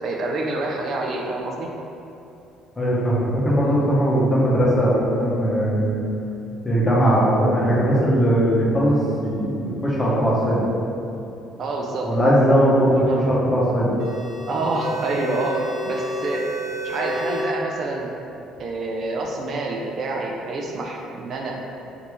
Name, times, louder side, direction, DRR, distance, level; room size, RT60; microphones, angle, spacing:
voice 1, 0.0-1.7 11.6-12.1 13.0-13.2 14.5-16.5 16.8-18.1 18.6-21.6, right 2 dB, 50° right, -1 dB, 0.3 m, -27 dB
voice 2, 2.8-6.0 6.6-10.6 12.0-13.0 13.3-13.9, equal, 20° left, -6 dB, 0.7 m, -19 dB
sound 1, 14.0-17.4, equal, 70° right, 0.7 m, -30 dB
3.3 x 2.5 x 3.0 m, 2.9 s
cardioid pair, 130°, 0 cm